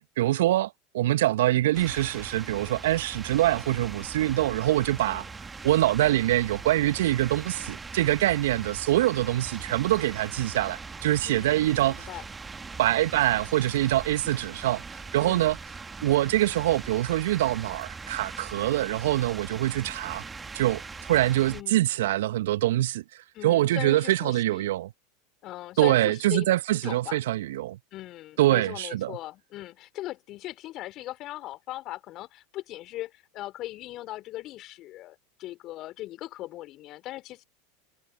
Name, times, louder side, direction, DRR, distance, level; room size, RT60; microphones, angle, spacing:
voice 1, 0.2-5.2 5.6-12.1 12.8-14.8 15.1-15.6 16.0-20.2 20.5-20.8 21.1-23.0 23.4-24.9 25.8-27.8 28.4-29.2, right 15 dB, 65° right, 1.4 m, -24 dB
sound 1, 1.7-21.6, right 4 dB, 15° right, 1.9 m, -41 dB
voice 2, 11.2-11.6 11.9-12.3 15.2-15.6 21.4-21.9 23.3-24.7 25.4-26.5 26.8-27.2 27.9-37.4, left 16 dB, 45° left, 3.2 m, -39 dB
figure-of-eight pair, 80°, 0 cm